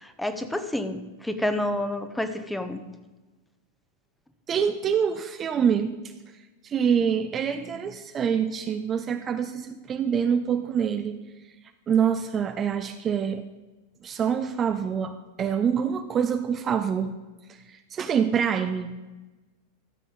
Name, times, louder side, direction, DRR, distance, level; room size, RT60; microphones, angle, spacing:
voice 1, 0.0-2.8, left 1 dB, 5° left, 9 dB, 0.8 m, -29 dB
voice 2, 4.5-5.9 6.6-11.2 11.9-13.4 14.0-17.2 17.7-19.0, right 7 dB, 25° right, 8 dB, 0.5 m, -25 dB
13.5 x 7.6 x 4.0 m, 1.2 s
figure-of-eight pair, 90°, 0 cm